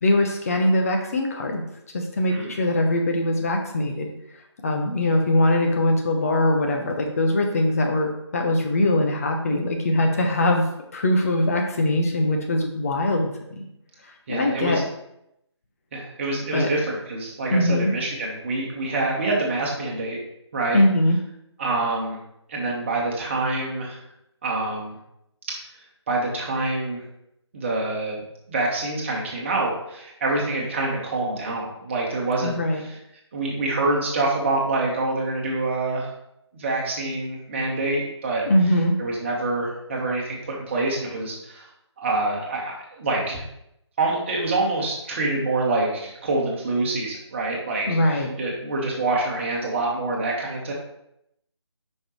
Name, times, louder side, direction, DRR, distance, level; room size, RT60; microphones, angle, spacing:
voice 1, 0.0-1.6 1.9-4.1 4.6-10.6 10.9-13.7 14.3-14.8 16.5-16.7 17.5-17.9 20.7-21.2 32.4-32.8 38.5-39.0 47.9-48.3, left 1 dB, 30° left, 3 dB, 1.0 m, -22 dB
voice 2, 14.3-14.8 15.9-20.2 20.5-20.8 21.6-22.2 22.5-24.0 24.4-24.9 25.5-25.6 26.1-27.0 27.5-33.0 33.3-36.1 36.5-38.4 39.0-41.7 42.0-43.4 44.0-50.7, right 2 dB, 25° right, -2 dB, 1.5 m, -26 dB
8.9 x 5.5 x 3.2 m, 0.81 s
figure-of-eight pair, 155°, 15 cm